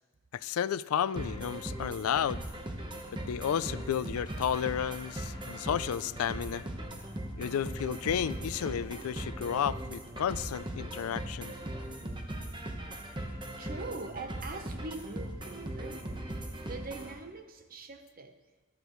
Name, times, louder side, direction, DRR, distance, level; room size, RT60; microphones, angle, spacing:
voice 1, 0.3-2.5 3.1-6.6 7.4-11.5, left 8 dB, 90° left, 18 dB, 0.4 m, -32 dB
sound 1, 1.2-17.1, right 1 dB, 20° right, 1.1 m, -39 dB
sound 2, 4.2-11.1, left 1 dB, 20° left, 1.3 m, -54 dB
voice 2, 13.6-16.1 16.6-18.4, right 3 dB, 45° right, 7 dB, 0.9 m, -42 dB
15.0 x 12.5 x 3.1 m, 1.2 s
head